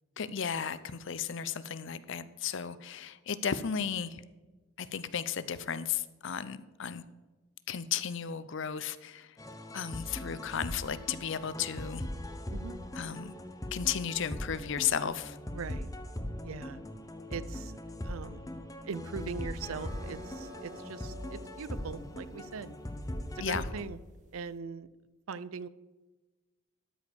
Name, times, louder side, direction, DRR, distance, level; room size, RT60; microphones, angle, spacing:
voice 1, 0.2-4.2 4.8-7.0 7.7-9.4 9.7-12.0 13.0-13.3 13.7-15.4 23.4-23.6, left 8 dB, 60° left, 15 dB, 0.6 m, -34 dB
sound 1, 9.4-23.8, left 1 dB, 15° left, 0.8 m, -40 dB
voice 2, 15.5-15.9 16.4-16.8 17.3-17.8 18.0-18.4 18.8-22.8 23.3-24.0 24.3-24.9 25.3-25.7, right 5 dB, 75° right, 16 dB, 0.5 m, -41 dB
sound 2, 19.6-24.6, equal, 35° right, 1.2 m, -52 dB
12.5 x 5.0 x 6.9 m, 1.2 s
head